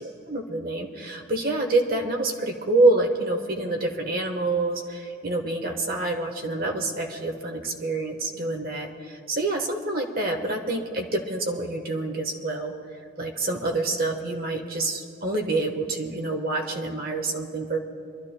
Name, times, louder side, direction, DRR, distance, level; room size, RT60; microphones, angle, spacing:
voice 1, 0.3-12.7 13.2-17.8, right 2 dB, 45° right, 2 dB, 1.2 m, -27 dB
28.0 x 13.0 x 2.2 m, 2.7 s
head